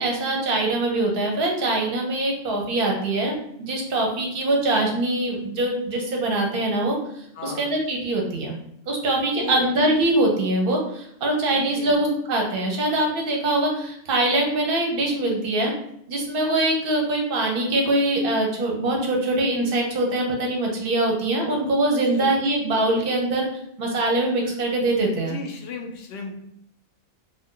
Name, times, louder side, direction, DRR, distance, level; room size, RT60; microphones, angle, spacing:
voice 1, 0.0-7.0 7.4-8.6 8.9-15.7 16.1-23.5 23.8-25.4, right 2 dB, 50° right, 0 dB, 0.7 m, -23 dB
voice 2, 7.4-7.7 9.3-9.7 11.5-12.0 22.2-22.3 25.2-26.3, left 5 dB, 60° left, 3 dB, 0.6 m, -35 dB
2.5 x 2.2 x 3.6 m, 0.73 s
omnidirectional pair, 1.4 m